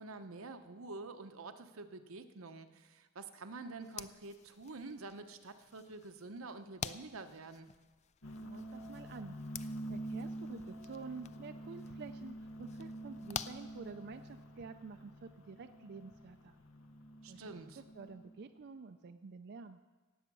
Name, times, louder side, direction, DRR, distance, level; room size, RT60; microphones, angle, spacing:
voice 1, 0.0-7.7 17.2-17.8, right 3 dB, 80° right, 8 dB, 0.9 m, -48 dB
sound 1, 3.8-14.4, left 7 dB, 35° left, 0.4 m, -50 dB
sound 2, 8.2-18.5, right 1 dB, 70° left, 1.0 m, -47 dB
voice 2, 8.4-16.6 17.3-19.8, right 4 dB, 50° right, 7 dB, 0.4 m, -49 dB
18.0 x 8.0 x 6.1 m, 1.3 s
head